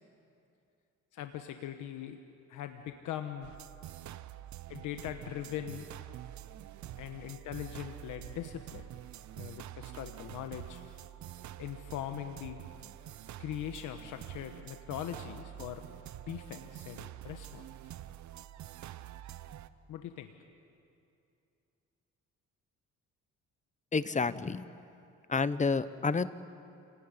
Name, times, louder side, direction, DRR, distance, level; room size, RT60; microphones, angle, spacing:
voice 1, 1.1-2.2 2.5-3.5 4.7-5.8 7.0-8.8 9.4-10.8 11.6-12.6 13.4-15.8 16.2-17.7 19.9-20.3, left 11 dB, 85° left, 7 dB, 1.2 m, -41 dB
sound 1, 3.4-19.7, right 12 dB, 70° right, 0.8 m, -47 dB
voice 2, 23.9-24.7 25.3-26.3, left 4 dB, 25° left, 14 dB, 0.9 m, -29 dB
28.5 x 18.0 x 9.9 m, 2.6 s
cardioid pair, 90°, 30 cm